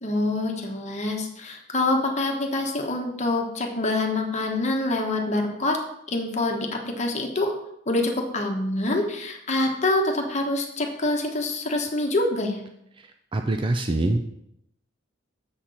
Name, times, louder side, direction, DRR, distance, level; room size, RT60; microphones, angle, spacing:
voice 1, 0.0-5.8 6.1-7.5 7.9-12.6, left 2 dB, 35° left, 2 dB, 1.1 m, -26 dB
voice 2, 13.3-14.2, right 2 dB, 25° right, 5 dB, 0.4 m, -24 dB
7.2 x 4.3 x 6.4 m, 0.78 s
head